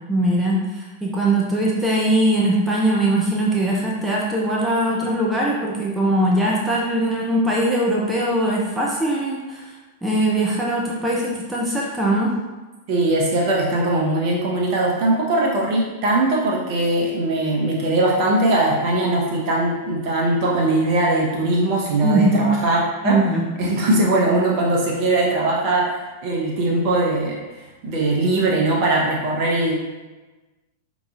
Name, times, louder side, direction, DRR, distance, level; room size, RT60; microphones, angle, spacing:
voice 1, 0.1-9.7 10.0-12.3 22.0-22.5 23.0-23.4, right 1 dB, 10° right, -4 dB, 0.7 m, -21 dB
voice 2, 12.9-23.2 23.6-27.4 27.8-29.7, right 2 dB, 50° right, -2 dB, 1.1 m, -20 dB
5.2 x 3.1 x 2.5 m, 1.2 s
hypercardioid pair, 95°, 0 cm